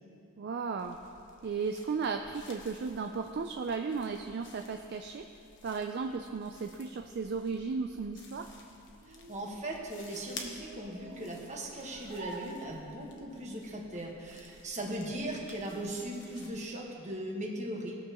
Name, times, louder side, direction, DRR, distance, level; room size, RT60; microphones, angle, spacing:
voice 1, 0.4-1.0 1.4-5.3 5.6-8.5, right 5 dB, 50° right, 5 dB, 0.4 m, -35 dB
sound 1, 0.8-16.7, left 4 dB, 55° left, 1.1 m, -53 dB
sound 2, 8.7-13.2, right 2 dB, 70° right, 2.2 m, -50 dB
voice 2, 9.1-18.0, right 1 dB, 35° right, -2 dB, 1.4 m, -38 dB
19.0 x 6.9 x 3.0 m, 2.8 s
head